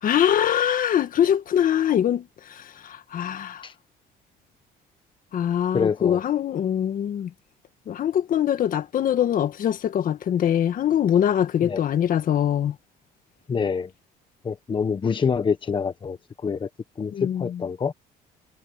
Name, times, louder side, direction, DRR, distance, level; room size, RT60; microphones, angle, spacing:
voice 1, 0.0-3.7 5.3-7.3 7.9-12.8 17.1-17.6, left 10 dB, 55° left, 1.8 m, -23 dB
voice 2, 5.7-6.2 11.6-11.8 13.5-13.9 14.4-16.7 17.0-17.9, left 6 dB, 30° left, 1.2 m, -26 dB
cardioid pair, 110°, 17 cm